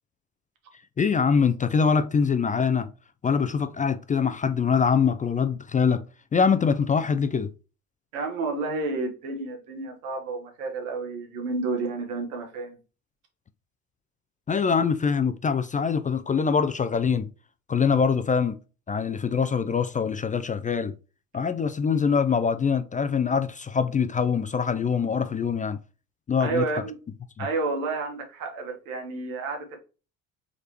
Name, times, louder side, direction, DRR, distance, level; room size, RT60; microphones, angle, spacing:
voice 1, 1.0-2.9 3.2-6.0 6.3-7.5 14.5-17.3 17.7-18.6 18.9-20.9 21.3-25.8 26.3-26.6 27.4-27.5, left 6 dB, 20° left, 0.4 m, -24 dB
voice 2, 8.1-12.8 26.4-26.9 27.4-29.8, right 3 dB, 85° right, 1.4 m, -30 dB
4.7 x 3.3 x 2.9 m
hypercardioid pair, 65°, 41 cm